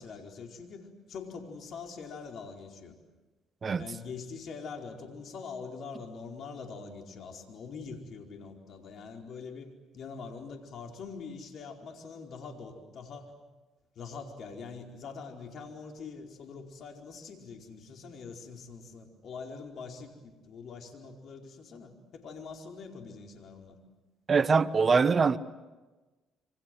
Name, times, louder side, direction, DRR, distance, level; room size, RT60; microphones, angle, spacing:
voice 1, 0.0-3.0 3.8-13.3 13.9-23.8, left 5 dB, 60° left, 4.7 m, -44 dB
voice 2, 24.3-25.4, right 5 dB, 40° right, 1.1 m, -23 dB
27.5 x 25.5 x 7.9 m
hypercardioid pair, 60°, 0 cm